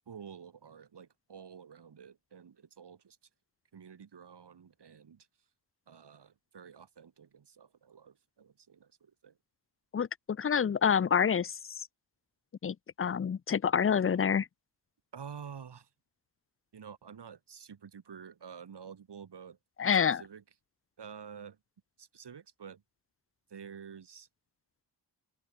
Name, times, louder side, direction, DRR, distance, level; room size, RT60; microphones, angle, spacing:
voice 1, 0.1-3.2 3.7-5.3 5.9-9.4 15.1-15.9 16.7-19.6 19.9-20.4 21.0-21.6 22.0-22.8 23.5-24.3, right 7 dB, 70° right, 2.7 m, -49 dB
voice 2, 9.9-11.6 12.6-14.5 19.8-20.2, left 7 dB, 30° left, 0.5 m, -27 dB
open air
wide cardioid pair, 110°, 42 cm